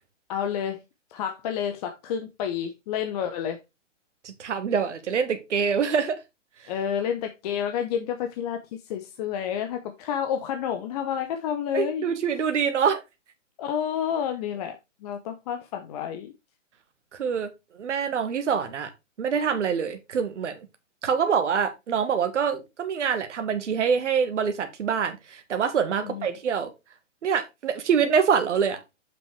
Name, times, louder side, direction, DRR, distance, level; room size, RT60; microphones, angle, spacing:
voice 1, 0.3-0.8 1.1-3.6 6.7-12.1 13.6-16.3 26.0-26.3, left 9 dB, 30° left, 0.8 m, -30 dB
voice 2, 4.2-6.2 6.6-6.7 11.7-13.0 17.1-17.5 17.7-18.9 19.2-20.6 21.0-26.7 27.2-28.8, right 6 dB, 70° right, 1.3 m, -25 dB
7.4 x 6.3 x 3.2 m
hypercardioid pair, 130°, 38 cm